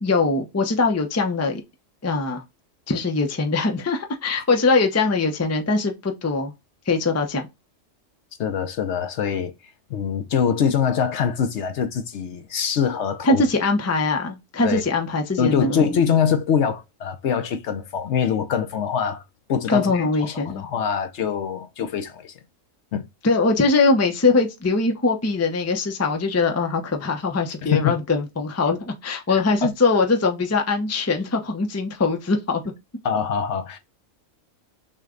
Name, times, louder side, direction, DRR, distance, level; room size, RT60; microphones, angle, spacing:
voice 1, 0.0-1.6 2.0-2.4 2.9-6.5 6.9-7.5 13.2-16.0 19.7-20.6 23.2-32.6, left 3 dB, 15° left, 0.5 m, -22 dB
voice 2, 8.4-9.5 9.9-13.4 14.6-14.8 15.4-19.2 19.5-22.3 22.9-23.0 27.6-27.9 29.3-29.7 33.0-33.8, left 7 dB, 65° left, 0.9 m, -24 dB
6.4 x 2.2 x 3.7 m
omnidirectional pair, 1.4 m